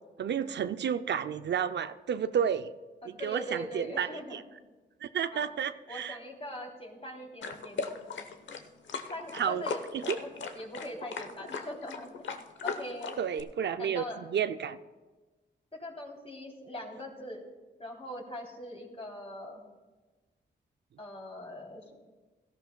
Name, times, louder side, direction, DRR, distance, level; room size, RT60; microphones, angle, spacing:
voice 1, 0.2-2.7 3.0-4.4 5.0-6.2 9.3-9.6 9.9-10.2 13.2-14.8, right 8 dB, 65° right, 11 dB, 0.5 m, -31 dB
voice 2, 3.0-4.4 5.3-5.5 5.9-7.9 9.1-12.3 12.6-13.2 13.8-14.3 15.7-17.4 17.8-19.6 21.0-21.9, equal, 30° left, 0 dB, 3.2 m, -41 dB
sound 1, 7.4-13.4, left 5 dB, 70° left, 0.9 m, -38 dB
17.0 x 13.5 x 2.3 m, 1.3 s
cardioid pair, 60°, 20 cm